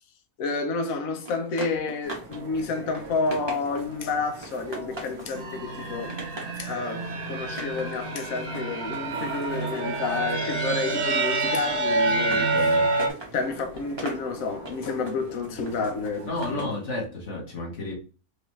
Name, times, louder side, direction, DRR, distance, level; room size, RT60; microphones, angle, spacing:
voice 1, 0.4-6.1 6.6-12.8 13.3-16.7, left 4 dB, 70° left, 1.1 m, -30 dB
sound 1, 1.2-2.4 2.7-4.0 4.4-5.3 5.7-6.6 7.4-10.4 10.7-16.8, right 1 dB, 20° right, 0.8 m, -41 dB
sound 2, 2.0-16.6, right 2 dB, 75° right, 1.5 m, -43 dB
sound 3, 5.3-13.1, right 2 dB, 50° right, 0.7 m, -27 dB
voice 2, 12.3-12.9 16.2-17.9, left 2 dB, 55° left, 1.6 m, -32 dB
4.8 x 2.5 x 3.1 m
omnidirectional pair, 1.5 m